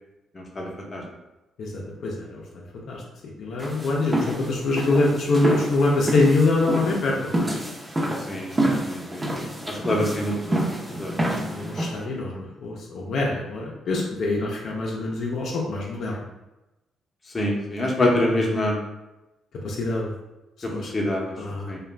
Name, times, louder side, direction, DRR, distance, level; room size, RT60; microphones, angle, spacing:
voice 1, 0.3-1.0 8.3-10.6 11.0-11.1 17.3-18.8 20.6-21.3 21.7-21.8, left 1 dB, 25° left, -2 dB, 0.7 m, -26 dB
voice 2, 1.6-2.4 2.7-3.0 3.4-7.2 11.1-11.3 11.5-16.2 19.6-20.1 20.7-20.9 21.4-21.7, left 2 dB, 65° left, -2 dB, 0.5 m, -24 dB
sound 1, 3.6-12.0, right 1 dB, 20° right, 0.7 m, -28 dB
2.4 x 2.2 x 3.2 m, 0.98 s
cardioid pair, 90°, 0 cm